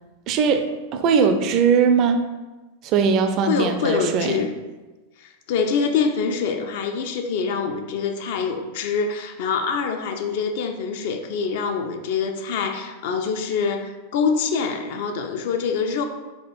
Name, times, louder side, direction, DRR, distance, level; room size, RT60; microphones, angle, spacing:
voice 1, 0.3-0.7 0.9-2.2 2.8-4.4, right 6 dB, 35° right, 7 dB, 0.4 m, -20 dB
voice 2, 3.5-4.5 5.2-16.0, left 5 dB, 50° left, 6 dB, 0.4 m, -25 dB
4.3 x 2.4 x 4.3 m, 1.2 s
figure-of-eight pair, 90°, 0 cm